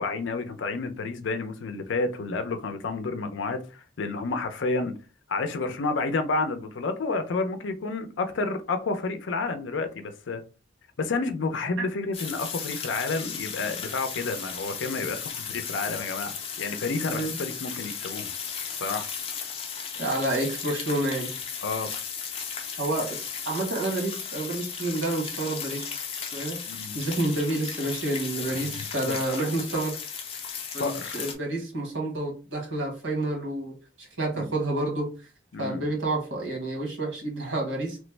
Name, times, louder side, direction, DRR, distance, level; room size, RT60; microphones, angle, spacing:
voice 1, 0.0-4.9 5.3-10.4 11.0-18.3 18.8-19.1 21.6-21.9 26.7-26.9 29.1-29.2 30.8-31.2 34.3-34.5 35.5-35.9, left 3 dB, 80° left, 0.5 m, -30 dB
sound 1, 12.1-31.4, left 6 dB, 30° left, 0.5 m, -35 dB
voice 2, 20.0-21.3 22.8-25.9 26.3-26.6 26.9-29.9 30.7-35.1 35.6-38.0, right 2 dB, 80° right, 1.4 m, -29 dB
3.2 x 2.0 x 3.2 m
head